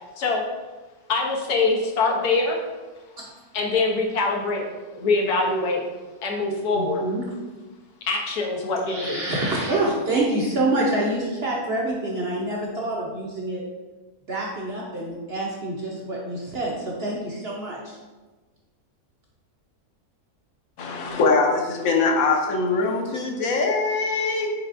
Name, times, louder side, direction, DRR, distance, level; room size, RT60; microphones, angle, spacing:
voice 1, 1.1-2.6 3.5-4.7 4.9-5.8 6.2-7.0 8.1-9.2, left 3 dB, 90° left, 0 dB, 1.4 m, -23 dB
voice 2, 6.7-7.2 8.9-13.6 14.3-18.0, right 2 dB, 55° right, -3 dB, 0.7 m, -26 dB
voice 3, 20.8-24.5, left 3 dB, 70° left, 1 dB, 1.1 m, -22 dB
4.8 x 4.4 x 2.5 m, 1.2 s
omnidirectional pair, 1.7 m